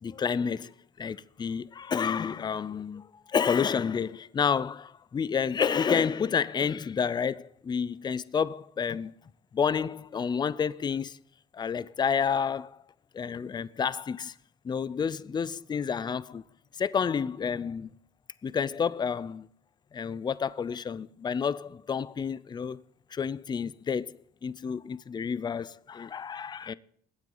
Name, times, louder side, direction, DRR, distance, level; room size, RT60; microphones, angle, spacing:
voice 1, 0.0-9.1 9.5-11.2 11.5-12.8 13.1-14.3 14.6-16.4 16.8-17.9 18.4-19.5 19.9-22.8 23.1-26.7, left 6 dB, 25° left, 0.5 m, -30 dB
21.5 x 9.2 x 3.9 m
cardioid pair, 110°, 17 cm